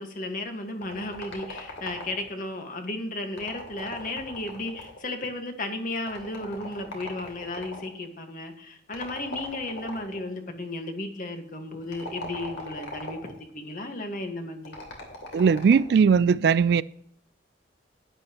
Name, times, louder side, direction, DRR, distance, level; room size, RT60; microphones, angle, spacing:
voice 1, 0.0-14.8, left 2 dB, 50° left, 1.5 m, -34 dB
sound 1, 0.8-2.4 3.3-5.1 6.1-7.9 8.9-10.3 11.8-13.4 14.7-16.0, left 1 dB, 80° left, 2.9 m, -40 dB
voice 2, 15.3-16.8, right 6 dB, 60° right, 0.3 m, -19 dB
12.0 x 9.6 x 3.0 m
head